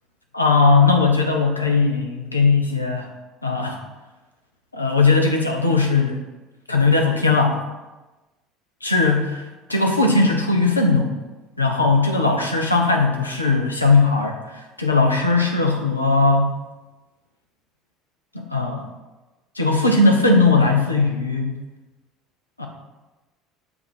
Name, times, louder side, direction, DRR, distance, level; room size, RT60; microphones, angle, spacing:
voice 1, 0.3-3.1 3.4-3.8 4.7-6.2 6.7-7.6 8.8-11.1 11.6-16.5 18.3-18.8 19.6-21.6 22.6-22.7, left 3 dB, 85° left, 2 dB, 0.6 m, -18 dB
7.0 x 2.7 x 5.0 m, 1.1 s
figure-of-eight pair, 60°, 0 cm